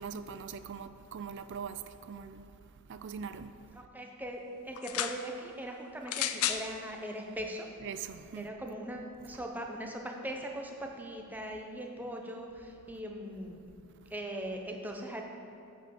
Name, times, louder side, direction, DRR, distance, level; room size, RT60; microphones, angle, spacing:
voice 1, 0.0-2.5 2.9-3.5 7.8-8.5, right 6 dB, 55° right, 0.4 m, -42 dB
voice 2, 3.7-7.7 8.4-13.6 14.1-15.2, equal, 10° right, 0.7 m, -40 dB
sound 1, 4.7-5.2 6.1-6.7 7.6-7.7, left 10 dB, 85° left, 0.5 m, -32 dB
7.7 x 5.4 x 7.0 m
head